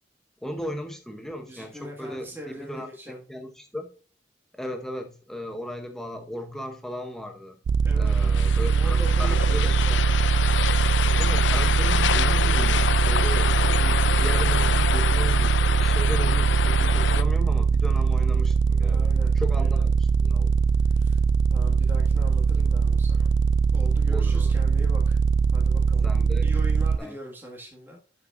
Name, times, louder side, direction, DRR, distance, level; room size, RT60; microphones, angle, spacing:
voice 1, 0.4-3.9 4.5-7.6 8.0-9.7 11.2-20.5 24.1-24.5 26.0-26.5 27.0-27.2, equal, 5° left, 4 dB, 0.8 m, -36 dB
voice 2, 1.5-3.2 7.8-8.1 8.7-10.2 18.5-18.6 18.8-19.8 20.8-21.2 21.5-23.3 23.7-25.2 25.5-26.0 26.4-28.0, equal, 10° right, -1 dB, 1.8 m, -41 dB
sound 1, 7.7-27.0, right 5 dB, 85° right, 0.3 m, -21 dB
sound 2, 8.1-17.2, left 8 dB, 85° left, 0.5 m, -27 dB
12.0 x 5.8 x 2.5 m, 0.39 s
head